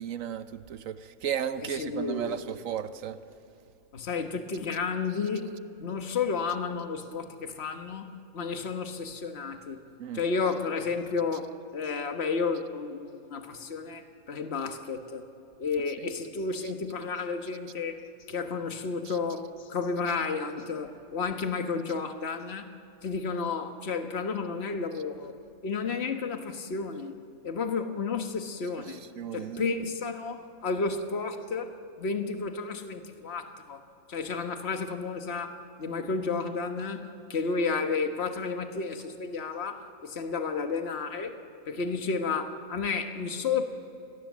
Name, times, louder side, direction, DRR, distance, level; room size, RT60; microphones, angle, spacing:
voice 1, 0.0-3.2 10.0-10.2 19.0-19.2 28.9-29.7, right 9 dB, 70° right, 1.1 m, -35 dB
voice 2, 1.7-2.4 3.9-5.5 5.8-8.1 8.3-9.8 10.1-15.3 15.6-18.0 18.3-22.7 23.0-25.3 25.6-27.2 27.4-29.0 29.3-33.8 34.1-41.4 41.7-43.6, left 4 dB, 50° left, 1.6 m, -32 dB
29.5 x 21.0 x 7.4 m
omnidirectional pair, 1.5 m